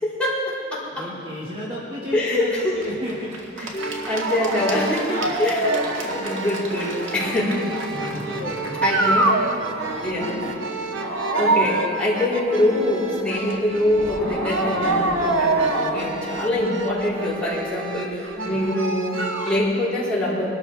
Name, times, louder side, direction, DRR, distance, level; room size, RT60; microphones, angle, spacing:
voice 1, 0.0-1.1 2.1-2.7 3.6-7.6 8.0-8.1 8.8-9.5 9.7-10.4 11.3-20.4, left 1 dB, 5° left, -10 dB, 4.3 m, -24 dB
voice 2, 0.9-3.3 3.6-3.7 5.1-5.3 5.8-6.0 7.6-7.7 8.2-8.9 18.4-18.6, equal, 25° right, -6 dB, 2.0 m, -33 dB
Applause / Crowd, 2.1-11.1, right 2 dB, 85° right, 1.9 m, -38 dB
sound 1, 3.7-19.6, right 2 dB, 65° right, 1.1 m, -26 dB
sound 2, 7.9-13.0 13.9-17.9 18.1-18.3, left 1 dB, 25° left, 0.7 m, -36 dB
22.5 x 13.0 x 3.5 m, 2.7 s
head